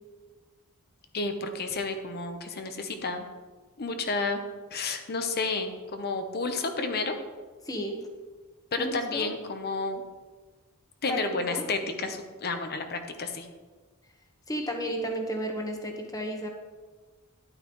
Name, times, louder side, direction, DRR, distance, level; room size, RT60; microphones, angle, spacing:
voice 1, 1.1-3.3 3.8-4.4 4.7-7.2 8.7-10.0 11.0-13.5, left 3 dB, 45° left, 6 dB, 0.9 m, -31 dB
voice 2, 7.6-8.0 8.8-9.3 11.1-11.2 11.5-11.7 14.5-16.5, equal, 15° left, 2 dB, 1.3 m, -32 dB
11.0 x 8.8 x 3.2 m, 1.4 s
head